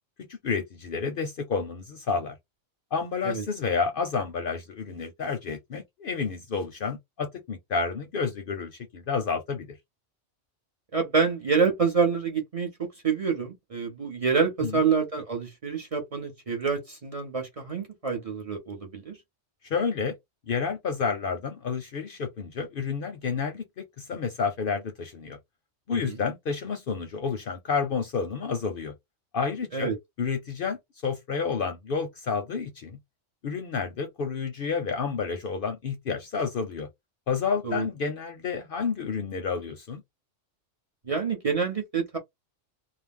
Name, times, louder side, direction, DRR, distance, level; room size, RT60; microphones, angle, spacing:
voice 1, 0.4-2.4 2.9-9.7 14.6-14.8 19.6-20.1 20.5-25.4 25.9-28.9 29.3-30.8 31.0-33.0 33.4-36.9 37.3-40.0, left 5 dB, 60° left, 0.7 m, -30 dB
voice 2, 10.9-19.2 26.0-26.2 29.7-30.0 37.6-37.9 41.0-42.2, right 5 dB, 35° right, 0.7 m, -27 dB
2.5 x 2.1 x 3.3 m
omnidirectional pair, 1.2 m